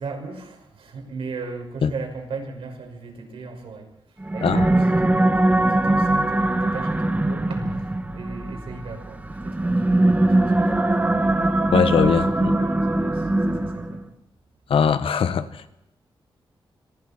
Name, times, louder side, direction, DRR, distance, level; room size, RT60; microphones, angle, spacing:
voice 1, 0.0-3.9 4.3-7.7 8.1-11.0 11.4-11.5 12.1-14.0, right 4 dB, 85° right, 5.9 m, -36 dB
sound 1, 4.2-14.1, right 1 dB, 15° right, 1.7 m, -21 dB
voice 2, 11.7-12.6 14.7-15.7, left 7 dB, 85° left, 1.3 m, -21 dB
26.5 x 23.0 x 4.5 m
wide cardioid pair, 95°, 9 cm